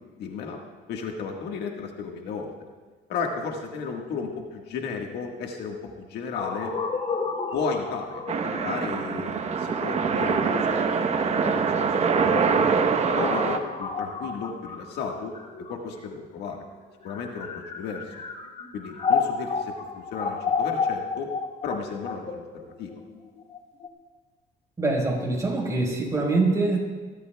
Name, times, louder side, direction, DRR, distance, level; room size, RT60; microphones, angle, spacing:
voice 1, 0.2-0.6 0.9-2.5 3.1-6.7 7.5-12.7 13.1-15.4 15.7-16.6 17.0-18.1 18.7-21.4 21.6-22.9, left 5 dB, 75° left, 2 dB, 1.6 m, -34 dB
sound 1, 6.3-16.2 16.9-23.9, left 5 dB, 40° left, 1.8 m, -32 dB
sound 2, 8.3-13.6, right 5 dB, 40° right, 1.0 m, -24 dB
voice 2, 24.8-26.8, right 3 dB, 20° right, -2 dB, 4.5 m, -24 dB
28.5 x 12.5 x 2.3 m, 1.4 s
cardioid pair, 110°, 17 cm